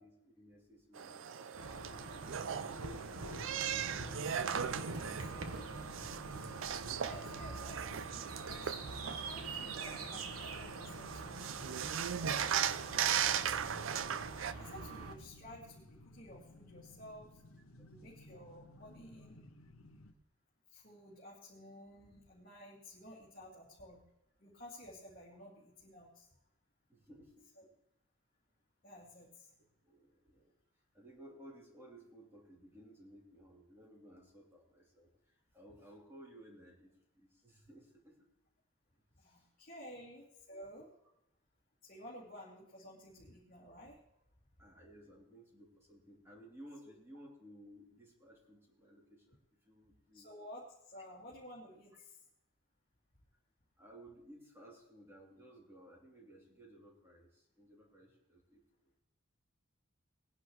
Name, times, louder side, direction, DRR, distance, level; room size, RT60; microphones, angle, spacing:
voice 1, 0.0-3.4 3.8-4.4 4.7-6.3 17.6-18.2 26.9-27.7 29.8-30.5 30.9-38.2 39.2-39.5 39.9-40.0 44.6-49.4 49.6-50.3 53.8-58.9, right 1 dB, 10° right, -3 dB, 3.0 m, -58 dB
sound 1, 0.9-14.5, right 8 dB, 65° right, 0.5 m, -38 dB
sound 2, 1.5-15.2, right 3 dB, 90° right, 1.2 m, -45 dB
sound 3, 3.2-20.1, left 1 dB, 75° left, 0.9 m, -57 dB
voice 2, 7.0-8.7 9.1-11.8 12.1-13.8 14.6-17.4 17.9-19.4 20.7-24.0 24.4-26.3 27.6-27.7 28.8-29.6 39.2-40.9 41.8-44.0 46.8-46.9 50.1-52.2, left 1 dB, 40° left, -6 dB, 2.3 m, -53 dB
20.5 x 10.5 x 3.1 m, 0.85 s
head